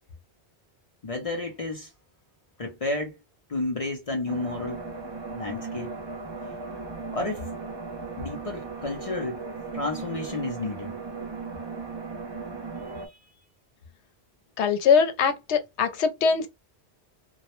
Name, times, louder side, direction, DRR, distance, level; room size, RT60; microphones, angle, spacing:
voice 1, 1.0-1.9 2.6-3.2 3.5-4.8 5.3-5.9 7.1-7.4 8.2-9.4 9.7-10.9 13.0-13.2, left 2 dB, 45° left, 0.5 m, -31 dB
sound 1, 4.3-13.1, right 4 dB, 35° right, 0.5 m, -37 dB
voice 2, 14.6-16.5, left 6 dB, 85° left, 0.9 m, -22 dB
2.3 x 2.0 x 2.9 m
omnidirectional pair, 1.1 m